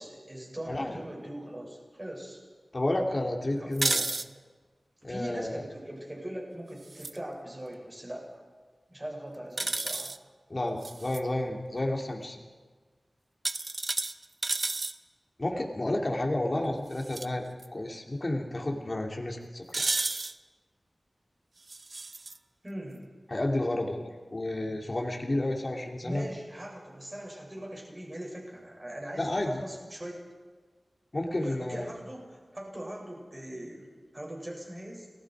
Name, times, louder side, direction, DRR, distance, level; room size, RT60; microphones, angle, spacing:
voice 1, 0.0-2.4 3.5-3.7 5.1-8.4 8.9-10.1 16.3-16.6 22.6-23.0 26.0-30.2 31.4-33.9 34.1-35.1, right 1 dB, 25° right, -1 dB, 7.2 m, -41 dB
voice 2, 0.7-1.0 2.7-4.0 5.0-5.6 10.5-12.4 15.4-19.9 23.3-26.2 29.2-29.6 31.1-31.9, left 1 dB, 35° left, 1 dB, 2.9 m, -31 dB
sound 1, 3.7-4.3 6.8-7.2 9.6-10.2 10.8-11.2 13.4-14.9 17.0-17.3 17.6-17.7 19.7-20.3 21.7-22.4, right 3 dB, 55° right, 0.8 m, -31 dB
30.0 x 20.0 x 5.0 m, 1.5 s
wide cardioid pair, 70°, 0 cm